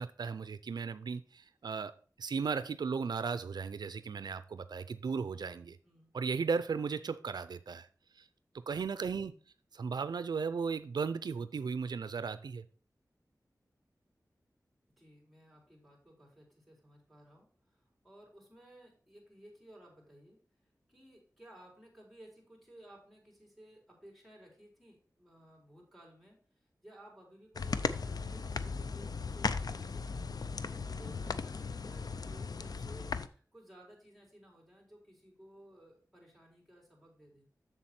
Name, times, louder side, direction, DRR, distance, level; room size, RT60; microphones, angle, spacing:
voice 1, 0.0-5.8 6.1-7.9 8.2-8.3 8.7-9.3 9.7-12.7, right 5 dB, 90° right, 0.4 m, -36 dB
voice 2, 15.0-20.4 20.9-30.3 30.7-37.5, right 1 dB, ahead, 4.2 m, -57 dB
sound 1, 27.5-33.3, left 4 dB, 70° left, 0.5 m, -37 dB
7.4 x 7.1 x 4.3 m
wide cardioid pair, 65°, 7 cm